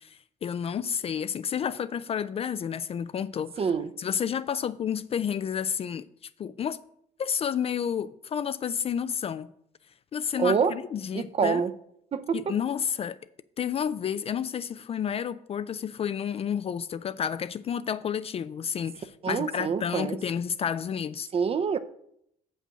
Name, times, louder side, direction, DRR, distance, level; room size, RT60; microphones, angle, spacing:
voice 1, 0.0-3.7 4.0-6.1 6.4-6.8 7.2-9.5 10.1-11.6 12.3-13.2 13.6-21.3, left 8 dB, 35° left, 0.3 m, -30 dB
voice 2, 3.6-3.9 10.4-10.7 11.1-11.7 12.1-12.5 19.2-20.2 21.3-21.8, right 6 dB, 35° right, 0.6 m, -26 dB
7.4 x 5.5 x 6.3 m
cardioid pair, 110°, 17 cm